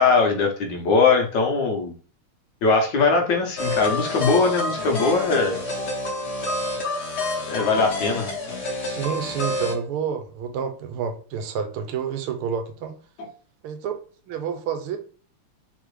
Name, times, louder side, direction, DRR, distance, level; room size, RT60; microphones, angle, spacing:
voice 1, 0.0-1.9 2.6-5.8 7.5-8.3 13.2-13.3, left 4 dB, 65° left, 1.3 m, -21 dB
sound 1, 3.6-9.7, left 2 dB, 80° left, 0.5 m, -28 dB
voice 2, 8.8-12.9 13.6-13.9 14.3-15.0, right 7 dB, 85° right, 1.6 m, -29 dB
4.0 x 3.6 x 3.1 m
omnidirectional pair, 2.4 m